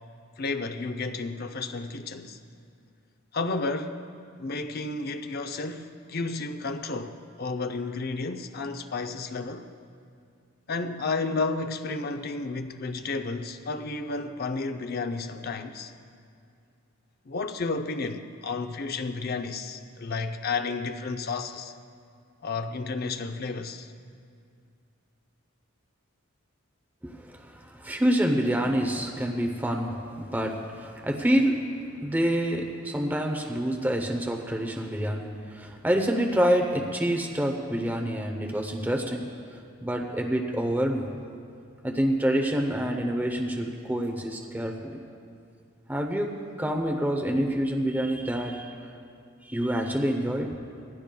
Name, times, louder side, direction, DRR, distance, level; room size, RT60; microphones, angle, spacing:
voice 1, 0.4-2.4 3.3-4.0 4.4-9.6 10.7-15.9 17.3-21.7 22.4-23.9, left 3 dB, 45° left, 0.5 m, -32 dB
voice 2, 27.0-31.7 32.0-39.3 39.8-41.1 41.8-45.0 45.9-48.7 49.4-50.6, equal, 10° right, 0.7 m, -27 dB
18.5 x 15.5 x 2.3 m
head